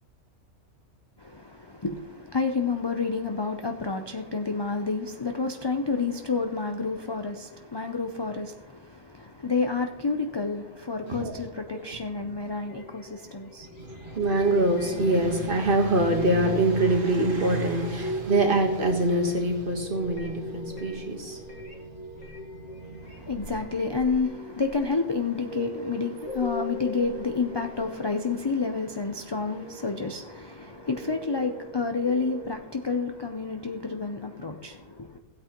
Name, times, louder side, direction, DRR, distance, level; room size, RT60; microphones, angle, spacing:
voice 1, 1.2-13.7 23.0-35.2, left 4 dB, 40° left, 0.4 m, -29 dB
sound 1, 12.7-28.9 29.4-32.5, equal, 75° left, 2.0 m, -39 dB
voice 2, 13.8-21.4 22.8-23.2, right 1 dB, 45° right, 1.5 m, -24 dB
16.0 x 8.5 x 3.0 m
omnidirectional pair, 1.3 m